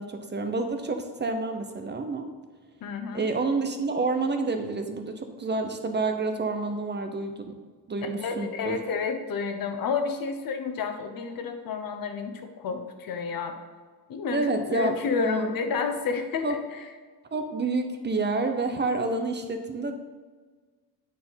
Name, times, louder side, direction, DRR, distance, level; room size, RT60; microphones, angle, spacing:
voice 1, 0.0-2.3 3.1-7.5 7.9-8.8 14.3-15.5 16.4-16.5 17.3-19.9, right 3 dB, 25° right, 6 dB, 0.6 m, -28 dB
voice 2, 2.8-3.2 8.0-13.6 14.1-16.8, left 5 dB, 55° left, 7 dB, 1.0 m, -30 dB
9.0 x 4.5 x 5.6 m, 1.4 s
cardioid pair, 145°, 40 cm